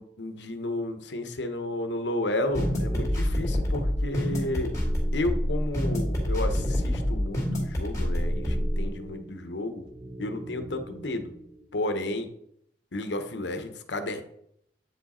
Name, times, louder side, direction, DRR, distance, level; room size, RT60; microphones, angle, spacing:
voice 1, 0.0-4.7 5.1-9.8 10.2-11.3 11.7-12.3 12.9-14.2, left 1 dB, 90° left, 8 dB, 0.9 m, -32 dB
sound 1, 2.4-11.6, right 2 dB, 65° right, 3.1 m, -43 dB
sound 2, 2.5-8.9, equal, 20° left, 2.0 m, -27 dB
8.6 x 4.8 x 4.2 m, 0.72 s
head